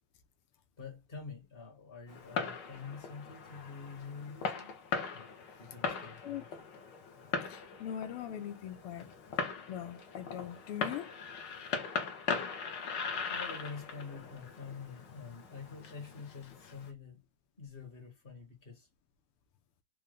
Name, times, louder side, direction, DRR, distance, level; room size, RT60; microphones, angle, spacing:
voice 1, 0.8-4.8 5.1-6.5 12.9-17.2 17.6-18.9, left 5 dB, 30° left, 1.4 m, -47 dB
Fireworks, 2.1-16.9, left 5 dB, 60° left, 1.6 m, -40 dB
voice 2, 7.5-9.1 9.7-11.1, left 10 dB, 85° left, 1.8 m, -41 dB
5.3 x 2.5 x 3.3 m
omnidirectional pair, 2.4 m